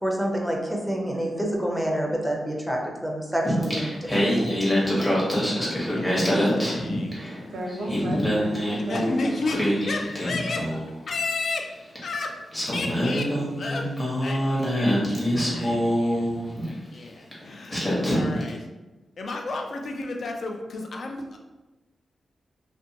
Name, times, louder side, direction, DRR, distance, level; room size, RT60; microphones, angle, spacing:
voice 1, 0.0-4.5, right 1 dB, ahead, -1 dB, 0.5 m, -28 dB
Singing, 3.4-7.4 7.7-10.9 12.0-12.1 12.5-16.7 17.3-17.4 17.7-18.5, equal, 20° left, 0.9 m, -25 dB
voice 2, 5.9-7.9 8.6-11.7 12.0-12.4 12.7-13.9 14.2-15.0 15.5-16.3 16.7-18.7 19.2-21.4, left 3 dB, 65° left, 2 dB, 0.4 m, -33 dB
voice 3, 7.5-9.0, right 1 dB, 85° right, 0 dB, 0.5 m, -34 dB
2.6 x 2.2 x 2.6 m, 1.1 s
cardioid pair, 85°, 0 cm